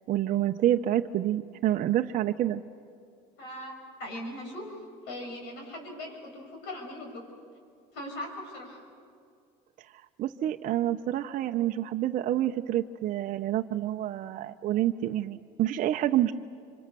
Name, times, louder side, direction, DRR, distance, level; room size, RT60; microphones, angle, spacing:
voice 1, 0.1-2.6 9.8-16.3, right 12 dB, 50° right, 5 dB, 0.7 m, -28 dB
voice 2, 3.4-4.8 5.1-7.2 7.9-8.8, left 1 dB, 75° left, 2 dB, 6.4 m, -40 dB
25.5 x 24.5 x 6.9 m, 2.2 s
cardioid pair, 115°, 18 cm